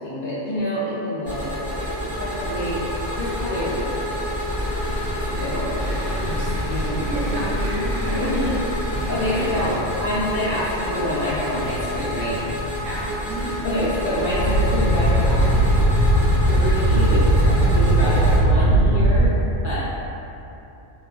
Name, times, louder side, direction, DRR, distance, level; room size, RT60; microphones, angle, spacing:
voice 1, 0.0-2.8 3.1-4.3 5.1-7.0 8.1-8.5 9.1-9.7 10.0-12.4 13.6-15.5 16.5-19.3 19.6-19.9, left 1 dB, 60° left, -9 dB, 0.5 m, -27 dB
sound 1, 1.3-18.4, equal, 25° right, 0.5 m, -28 dB
sound 2, 4.5-18.4, equal, 85° right, 1.1 m, -36 dB
voice 2, 5.8-6.2 6.8-8.4 9.1-9.5 12.8-13.5, right 1 dB, 55° right, -8 dB, 0.8 m, -30 dB
sound 3, 14.2-19.3, right 1 dB, 80° left, 1.0 m, -18 dB
2.9 x 2.2 x 2.2 m, 2.9 s
omnidirectional pair, 1.3 m